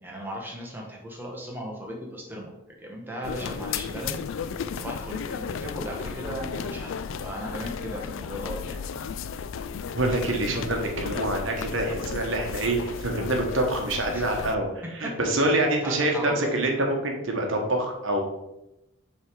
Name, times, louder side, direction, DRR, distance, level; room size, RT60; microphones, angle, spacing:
voice 1, 0.0-2.5 2.8-4.2 4.7-6.9 7.2-8.8 14.1-14.2 15.5-16.5, equal, 10° right, -2 dB, 1.0 m, -36 dB
sound 1, 3.2-14.5, left 6 dB, 65° left, 0.3 m, -34 dB
voice 2, 9.9-18.2, right 1 dB, 65° right, 2 dB, 1.1 m, -26 dB
6.4 x 3.4 x 4.6 m, 0.91 s
head